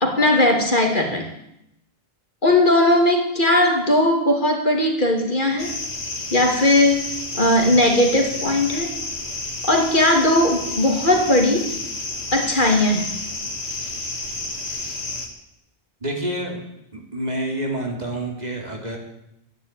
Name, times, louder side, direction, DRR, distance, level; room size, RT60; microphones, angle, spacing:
voice 1, 0.0-1.3 2.4-5.7 6.3-8.9 9.6-11.7 12.3-13.1, left 1 dB, 50° left, 2 dB, 2.8 m, -18 dB
sound 1, 5.6-15.3, left 2 dB, 75° left, 2.3 m, -30 dB
voice 2, 16.0-16.6 16.9-19.0, right 1 dB, 40° right, 0 dB, 3.2 m, -28 dB
13.5 x 10.5 x 9.0 m, 0.80 s
omnidirectional pair, 1.1 m